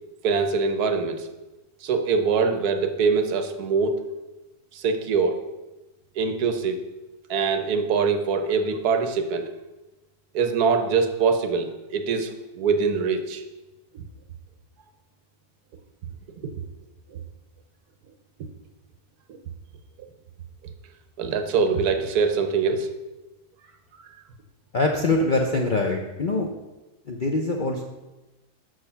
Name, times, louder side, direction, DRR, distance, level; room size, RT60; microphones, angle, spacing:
voice 1, 0.2-1.3 1.8-4.0 4.7-5.4 6.2-6.9 7.3-9.5 10.3-13.4 17.1-17.2 19.3-19.4 21.2-22.9, right 5 dB, 75° right, 8 dB, 1.3 m, -23 dB
voice 2, 24.7-26.5 27.1-27.9, left 2 dB, 55° left, 1 dB, 0.5 m, -23 dB
6.4 x 6.3 x 5.6 m, 1.0 s
omnidirectional pair, 1.7 m